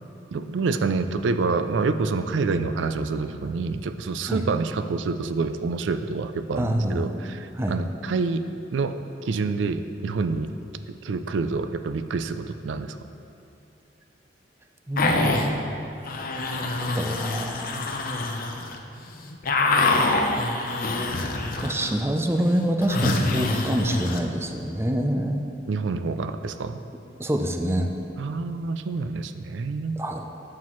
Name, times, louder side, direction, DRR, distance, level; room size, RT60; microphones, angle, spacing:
voice 1, 0.3-8.4 8.7-10.5 11.0-13.1 25.7-26.8 28.2-30.0, right 4 dB, 90° right, 10 dB, 0.4 m, -27 dB
voice 2, 6.6-7.1 7.6-7.8 14.9-15.5 16.8-17.9 20.9-21.0 21.6-25.5 27.2-27.9 30.0-30.3, right 1 dB, 15° right, 4 dB, 0.5 m, -26 dB
sound 1, 15.0-15.5 16.1-18.8 19.1-22.0 22.2-24.2, left 2 dB, 50° left, 0.7 m, -25 dB
11.5 x 7.6 x 3.1 m, 2.8 s
head